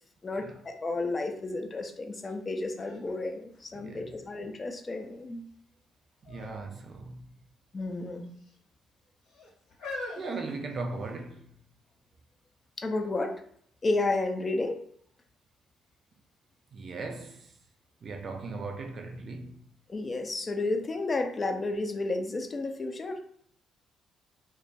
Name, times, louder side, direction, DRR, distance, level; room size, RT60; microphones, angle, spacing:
voice 1, 0.2-5.4 7.7-8.3 12.8-13.4 13.8-14.8 19.9-23.2, left 2 dB, 35° left, 0.4 m, -32 dB
sound 1, 2.2-2.3 2.8-4.3 4.9-5.4 6.2-6.6 6.9-7.0 7.9-8.6 9.3-11.3 12.1-12.2, left 2 dB, 70° left, 0.7 m, -44 dB
voice 2, 3.7-4.1 6.2-7.2 10.2-11.5 16.7-17.5 18.0-19.6, right 3 dB, 45° right, 0.4 m, -38 dB
2.2 x 2.1 x 2.7 m
figure-of-eight pair, 45°, 0 cm